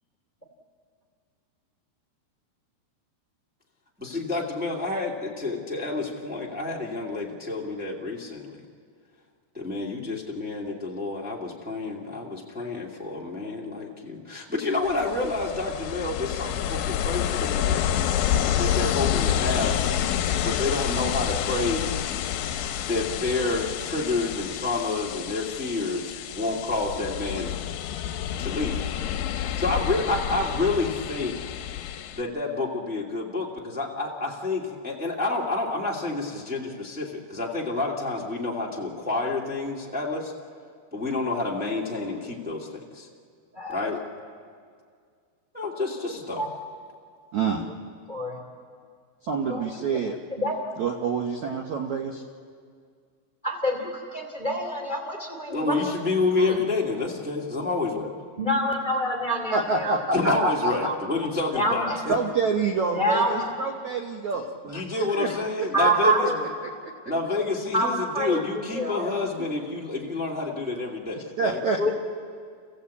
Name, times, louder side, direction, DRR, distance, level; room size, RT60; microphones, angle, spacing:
voice 1, 4.0-8.6 9.5-17.9 18.6-19.8 20.4-21.9 22.8-27.5 28.4-28.8 29.3-31.4 32.1-40.3 40.9-43.1 43.7-44.0 45.5-46.4 55.5-58.1 60.1-62.1 64.6-66.3 67.0-71.6, left 3 dB, 5° right, -3 dB, 0.7 m, -29 dB
Ocean, 14.8-32.2, left 10 dB, 75° left, 2.4 m, -28 dB
voice 2, 43.5-43.9 46.3-46.5 48.1-48.4 49.5-49.7 50.3-50.6 53.4-55.9 56.4-56.6 58.4-60.4 60.8-61.0 61.5-62.0 62.9-63.5 65.7-66.4 67.7-67.9 68.1-69.0 71.8-71.9, right 1 dB, 15° left, 1 dB, 1.8 m, -26 dB
voice 3, 47.3-47.7 49.2-50.2 50.8-52.2 59.5-60.7 62.1-65.4 65.8-65.9 69.4-69.5 71.4-71.9, right 4 dB, 70° right, 2 dB, 1.7 m, -27 dB
28.5 x 15.5 x 8.4 m, 2.1 s
omnidirectional pair, 4.9 m